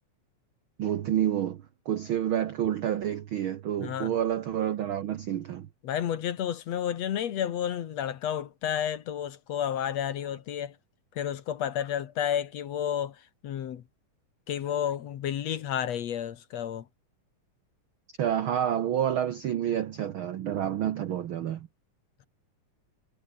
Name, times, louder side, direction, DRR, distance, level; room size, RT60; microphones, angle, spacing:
voice 1, 0.8-5.7 18.2-21.7, right 10 dB, 70° right, 1.2 m, -29 dB
voice 2, 3.8-4.1 5.8-10.8 11.2-13.8 14.5-16.9, left 9 dB, 60° left, 2.3 m, -31 dB
omnidirectional pair, 3.6 m